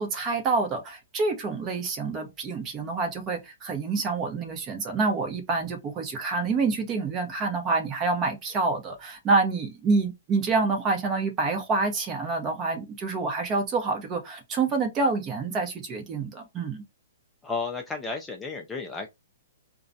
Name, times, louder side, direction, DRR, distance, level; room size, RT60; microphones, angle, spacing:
voice 1, 0.0-16.8, right 3 dB, 25° right, 0.8 m, -27 dB
voice 2, 17.4-19.1, left 4 dB, 10° left, 0.4 m, -32 dB
2.3 x 2.1 x 2.6 m
hypercardioid pair, 135°, 0 cm